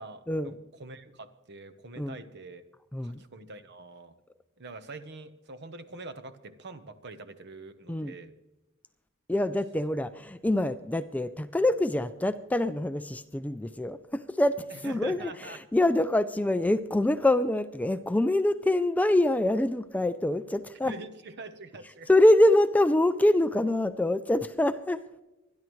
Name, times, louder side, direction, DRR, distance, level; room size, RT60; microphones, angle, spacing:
voice 1, 0.0-2.6 3.0-4.2 4.6-8.3 14.7-15.6 20.8-22.1, right 3 dB, 55° right, 11 dB, 1.0 m, -44 dB
voice 2, 2.9-3.2 7.9-8.1 9.3-20.9 22.1-25.0, left 1 dB, 5° left, 12 dB, 0.3 m, -25 dB
25.0 x 10.5 x 3.1 m, 1.0 s
head